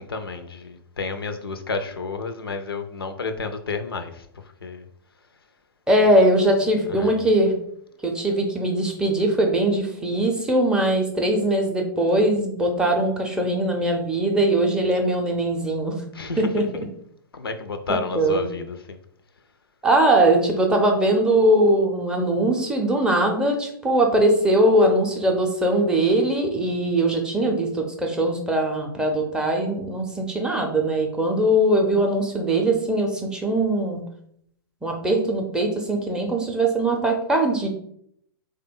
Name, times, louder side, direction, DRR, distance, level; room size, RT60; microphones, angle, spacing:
voice 1, 0.0-4.3 4.6-4.8 6.9-7.1 16.1-16.4 17.3-19.0, left 4 dB, 75° left, 0.4 m, -30 dB
voice 2, 5.9-7.5 8.0-16.0 16.4-16.7 18.1-18.4 19.8-34.0 34.8-37.7, right 1 dB, 5° right, 0.5 m, -21 dB
3.3 x 2.2 x 3.6 m
figure-of-eight pair, 110°, 12 cm